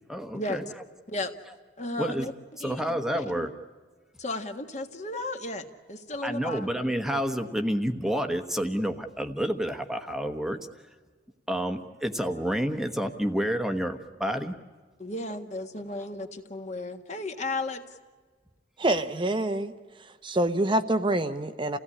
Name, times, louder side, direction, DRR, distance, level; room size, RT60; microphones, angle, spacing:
voice 1, 0.1-0.6 2.0-2.3 2.6-3.5 6.2-10.6 11.5-14.5, equal, ahead, 6 dB, 1.1 m, -29 dB
voice 2, 1.8-2.3 2.6-3.5 4.2-6.7 15.0-18.0, left 2 dB, 40° left, 6 dB, 1.7 m, -34 dB
voice 3, 18.8-19.7 20.0-21.8, right 1 dB, 25° right, 8 dB, 0.8 m, -26 dB
29.5 x 17.0 x 9.8 m, 1.5 s
head